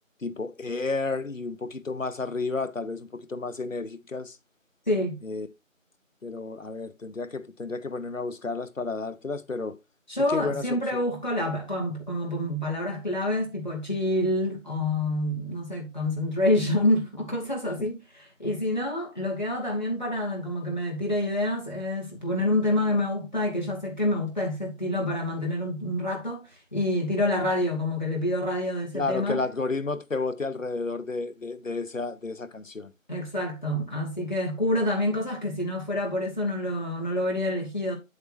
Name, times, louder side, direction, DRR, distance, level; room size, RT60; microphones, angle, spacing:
voice 1, 0.2-4.4 5.2-5.5 6.2-9.8 10.3-11.0 17.8-17.9 28.9-32.9, left 3 dB, 70° left, 1.0 m, -31 dB
voice 2, 4.9-5.2 10.1-29.4 33.1-38.0, left 1 dB, 35° left, 2.6 m, -27 dB
8.4 x 7.8 x 3.0 m
figure-of-eight pair, 175°, 40 cm